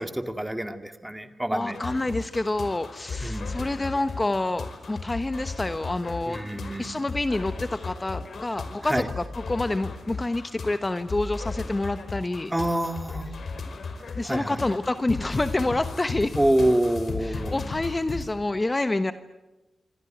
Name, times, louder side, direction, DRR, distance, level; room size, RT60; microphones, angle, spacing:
voice 1, 0.0-1.8 3.2-3.5 6.3-7.0 8.8-9.1 12.5-13.3 14.2-14.6 16.3-17.6, right 1 dB, 10° right, 8 dB, 2.3 m, -26 dB
voice 2, 1.5-6.4 6.8-12.5 14.1-16.4 17.2-19.1, left 2 dB, 20° left, 10 dB, 1.1 m, -28 dB
sound 1, 1.7-18.3, left 4 dB, 60° left, 5.1 m, -36 dB
26.5 x 26.0 x 8.1 m, 1.1 s
wide cardioid pair, 100°, 0 cm